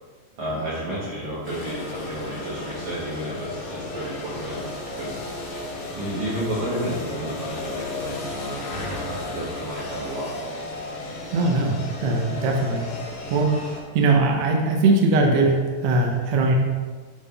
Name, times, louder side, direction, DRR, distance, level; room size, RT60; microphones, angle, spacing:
voice 1, 0.4-4.7 5.0-5.3 5.9-8.5 8.9-10.3, right 1 dB, 60° right, -9 dB, 2.4 m, -31 dB
sound 1, 1.4-13.8, left 2 dB, 65° left, 2.0 m, -34 dB
voice 2, 11.3-12.9 13.3-13.6 13.9-16.6, right 3 dB, 85° right, 1 dB, 1.5 m, -20 dB
10.5 x 3.7 x 3.4 m, 1.4 s
omnidirectional pair, 4.3 m